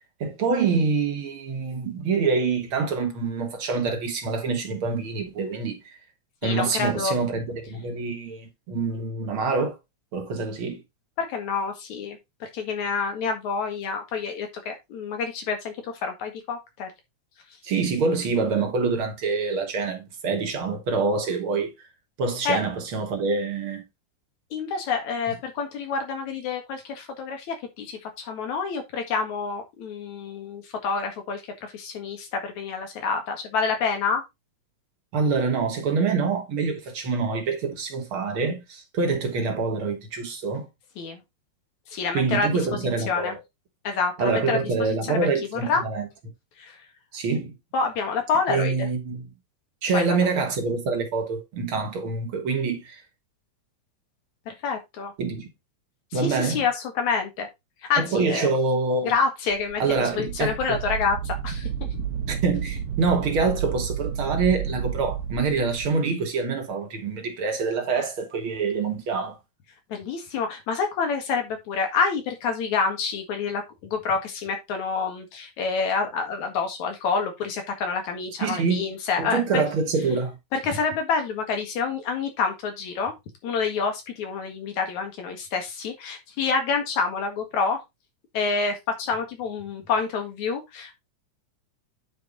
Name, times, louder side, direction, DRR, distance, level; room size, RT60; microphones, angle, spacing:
voice 1, 0.2-6.0 6.4-9.8 10.1-10.8 17.6-21.7 22.2-23.8 35.1-40.7 42.1-43.4 44.2-46.1 47.1-47.5 48.5-49.3 49.8-53.0 55.2-55.5 56.1-56.6 58.0-59.1 59.8-60.8 62.3-69.4 78.4-78.9 79.2-80.4, right 4 dB, 50° right, 2.1 m, -26 dB
voice 2, 6.4-7.1 8.9-9.0 11.2-16.9 22.4-22.6 24.5-34.2 41.0-41.2 41.9-42.5 43.1-43.3 43.8-45.8 46.6-46.8 47.7-48.9 49.9-50.0 54.5-55.1 56.1-57.5 57.9-58.5 59.0-62.0 69.9-79.6 80.5-83.1 83.4-87.8 88.3-90.9, left 5 dB, 75° left, 3.2 m, -28 dB
Wind, 59.5-65.9, right 8 dB, 70° right, 2.4 m, -31 dB
9.4 x 4.7 x 3.9 m
omnidirectional pair, 3.4 m